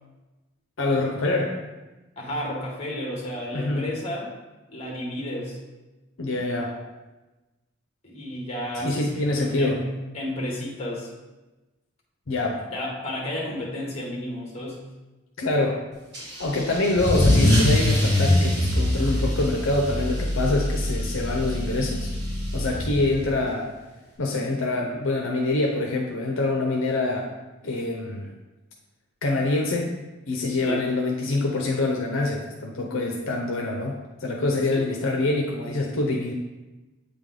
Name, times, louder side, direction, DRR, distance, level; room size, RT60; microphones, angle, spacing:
voice 1, 0.8-1.6 3.5-3.9 6.2-6.8 8.8-9.8 12.3-12.6 15.4-15.8 16.4-22.1 22.5-23.7 24.2-27.3 27.6-28.3 29.2-29.9 30.3-36.3, left 2 dB, 65° left, 0 dB, 0.6 m, -25 dB
voice 2, 2.2-4.3 4.7-5.6 8.0-9.9 10.1-11.1 12.7-14.9 30.6-30.9 34.6-34.9, left 1 dB, 30° left, -2 dB, 1.4 m, -32 dB
Car / Engine starting / Accelerating revving vroom, 16.1-23.3, left 1 dB, 50° right, 2.0 m, -23 dB
8.2 x 3.4 x 3.7 m, 1.1 s
head